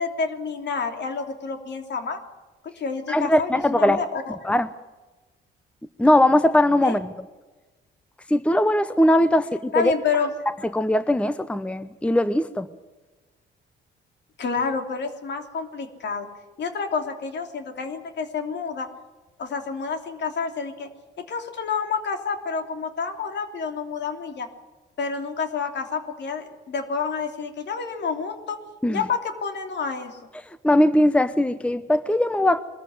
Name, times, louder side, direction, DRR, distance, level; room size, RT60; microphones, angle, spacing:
voice 1, 0.0-2.2 2.6-4.3 6.8-7.0 9.7-10.3 14.4-16.3 16.6-18.9 19.4-20.9 21.2-24.5 25.0-28.6 28.9-30.2, left 5 dB, 60° left, 5 dB, 3.1 m, -29 dB
voice 2, 3.1-4.0 4.4-4.7 6.0-7.1 8.3-9.9 10.7-12.7 28.8-29.0 30.6-32.6, left 1 dB, 5° left, 12 dB, 0.9 m, -20 dB
22.5 x 14.0 x 9.7 m, 1.2 s
cardioid pair, 90°, 20 cm